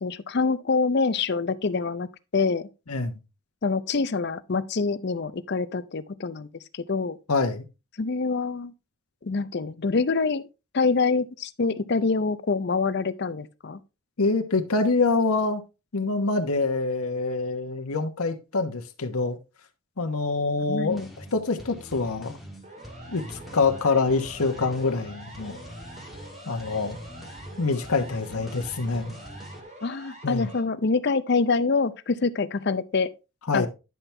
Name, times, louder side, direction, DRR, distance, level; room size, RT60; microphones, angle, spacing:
voice 1, 0.0-2.1 2.3-2.7 3.6-7.2 8.0-8.7 9.2-10.5 10.7-13.8 20.7-21.1 29.8-33.1 33.5-33.7, left 4 dB, 50° left, 0.5 m, -25 dB
voice 2, 7.3-7.6 14.2-15.6 15.9-19.4 20.0-22.4 23.1-25.6 26.5-27.0 27.6-29.1 30.2-30.5 33.5-33.7, left 3 dB, 90° left, 1.1 m, -25 dB
sound 1, 20.9-29.6, equal, ahead, 1.5 m, -43 dB
Siren, 22.6-30.6, right 1 dB, 30° right, 2.0 m, -46 dB
11.0 x 5.9 x 3.3 m
head